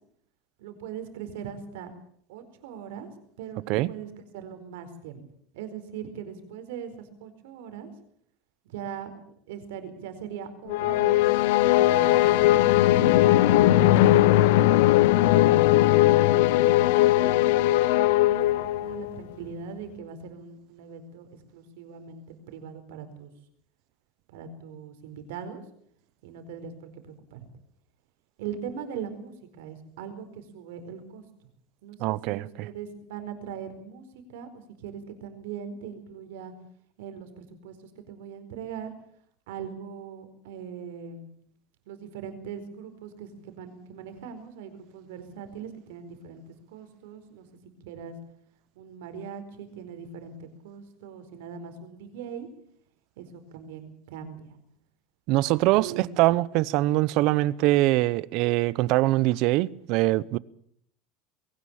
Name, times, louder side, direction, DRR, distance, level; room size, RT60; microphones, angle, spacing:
voice 1, 0.6-1.9 2.3-3.1 3.4-5.2 5.5-7.9 8.6-11.2 11.6-14.6 15.2-16.8 17.1-23.3 24.3-25.6 26.2-27.4 28.4-31.2 31.8-36.5 37.0-38.9 39.5-41.3 41.9-46.4 46.7-47.5 47.8-48.1 48.8-52.5 53.2-54.6 55.7-56.0, right 7 dB, 85° right, 4.5 m, -40 dB
sound 1, 10.7-19.1, left 15 dB, 80° left, 1.0 m, -19 dB
voice 2, 32.0-32.7 55.3-60.4, right 18 dB, 60° right, 0.8 m, -23 dB
21.5 x 18.0 x 7.4 m
supercardioid pair, 140°, 0 cm